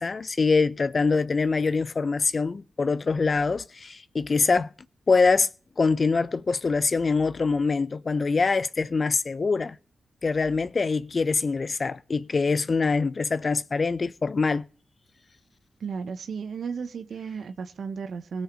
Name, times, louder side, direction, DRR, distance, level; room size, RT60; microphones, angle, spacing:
voice 1, 0.0-4.7 5.1-5.5 5.8-9.8 10.2-14.6, left 4 dB, 50° left, 0.6 m, -24 dB
voice 2, 15.8-18.4, right 5 dB, 75° right, 0.8 m, -34 dB
17.5 x 6.3 x 5.1 m
supercardioid pair, 45°, 0 cm